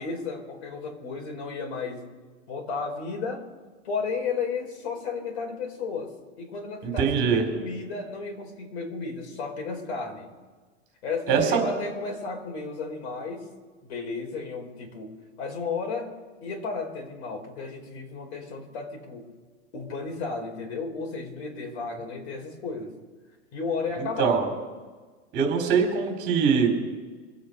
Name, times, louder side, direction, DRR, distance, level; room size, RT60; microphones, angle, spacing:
voice 1, 0.0-2.0 2.5-3.5 3.8-10.3 11.0-13.5 13.8-19.3 19.7-22.9 23.5-24.4, left 4 dB, 65° left, 2 dB, 4.6 m, -33 dB
voice 2, 6.8-7.4 11.3-11.6 24.0-24.4 25.3-26.7, right 6 dB, 30° right, 2 dB, 4.2 m, -23 dB
25.5 x 8.7 x 5.4 m, 1.4 s
supercardioid pair, 155°, 35 cm